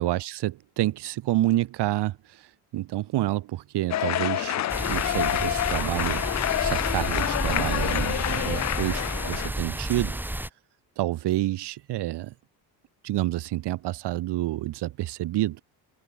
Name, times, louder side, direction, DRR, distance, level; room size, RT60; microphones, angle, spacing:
voice 1, 0.0-10.2 11.0-12.3 13.0-15.6, right 15 dB, 70° right, 4.8 m, -29 dB
sound 1, 3.9-9.5, left 13 dB, 40° left, 0.7 m, -27 dB
sound 2, 4.7-10.5, right 1 dB, 5° right, 5.0 m, -31 dB
cardioid pair, 150°, 42 cm